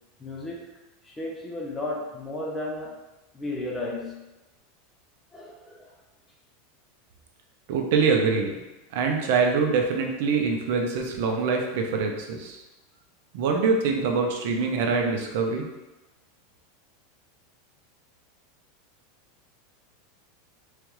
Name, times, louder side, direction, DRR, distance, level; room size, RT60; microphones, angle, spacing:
voice 1, 0.2-0.7 1.0-2.9 3.3-4.2 5.3-5.9, left 2 dB, 10° left, -2 dB, 0.6 m, -34 dB
voice 2, 7.7-8.6 8.9-12.6 13.3-15.7, right 4 dB, 60° right, 2 dB, 0.6 m, -24 dB
3.6 x 3.3 x 3.1 m, 1.1 s
supercardioid pair, 165°, 0 cm